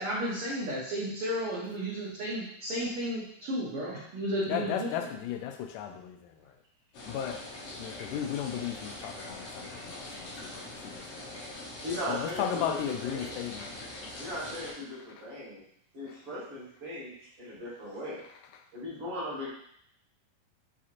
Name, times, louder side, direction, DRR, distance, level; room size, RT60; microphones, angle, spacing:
voice 1, 0.0-4.9, equal, 80° right, -6 dB, 1.2 m, -33 dB
voice 2, 4.5-6.5 7.1-7.5 7.8-11.5 12.1-13.7 16.1-16.2, left 9 dB, 90° left, 5 dB, 2.1 m, -35 dB
sound 1, 6.9-14.7, left 2 dB, 75° left, 1.3 m, -43 dB
voice 3, 11.8-13.4 14.2-15.6 15.9-18.2 18.7-19.5, left 1 dB, 45° right, -9 dB, 1.9 m, -38 dB
6.0 x 2.8 x 2.5 m, 0.69 s
omnidirectional pair, 3.7 m